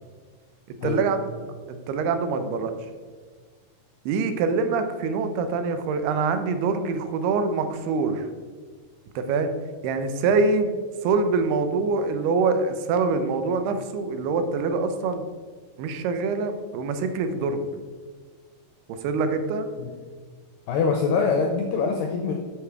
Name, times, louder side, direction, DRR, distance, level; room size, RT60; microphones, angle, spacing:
voice 1, 0.8-1.3 1.7-2.7 4.1-8.3 9.2-9.5 9.8-10.7 11.0-15.2 15.8-17.7 18.9-19.7, right 4 dB, 80° right, 8 dB, 2.7 m, -25 dB
voice 2, 20.7-22.3, left 5 dB, 80° left, 2 dB, 2.0 m, -24 dB
6.9 x 6.9 x 4.5 m, 1.5 s
omnidirectional pair, 4.7 m